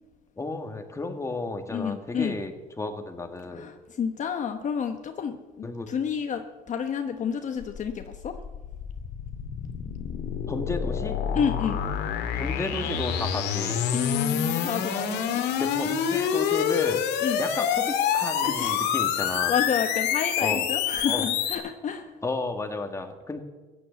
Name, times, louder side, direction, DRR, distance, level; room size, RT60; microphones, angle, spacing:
voice 1, 0.4-3.7 5.6-5.9 10.5-11.2 12.3-13.9 15.6-17.0 17.4-19.5 20.4-20.7 21.1-21.3 22.2-23.4, left 2 dB, 15° left, 5 dB, 1.9 m, -33 dB
voice 2, 1.7-2.4 3.5-8.4 11.3-11.8 13.9-15.4 17.2-17.4 18.4-18.9 19.2-22.1, left 7 dB, 45° left, 6 dB, 1.1 m, -30 dB
sound 1, 7.6-21.6, left 8 dB, 85° left, 2.1 m, -27 dB
15.5 x 10.0 x 8.2 m, 1.3 s
cardioid pair, 110°, 17 cm